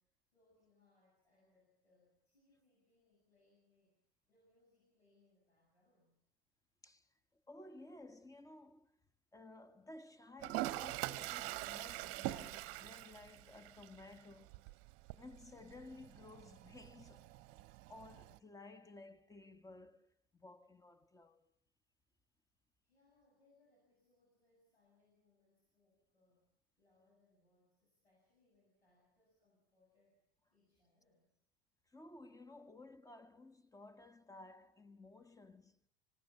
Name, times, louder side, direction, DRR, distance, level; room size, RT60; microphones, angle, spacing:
voice 1, 0.0-4.0 4.3-6.2 22.8-26.5 26.8-30.2 30.5-31.3, left 2 dB, 90° left, 7.9 m, -75 dB
voice 2, 6.8-9.0 9.3-14.6 15.2-17.4 17.9-21.5 31.9-35.8, left 2 dB, 10° left, 1.3 m, -56 dB
Toilet flush, 10.4-18.4, right 17 dB, 50° right, 0.9 m, -45 dB
25.5 x 18.0 x 7.1 m
figure-of-eight pair, 80°, 31 cm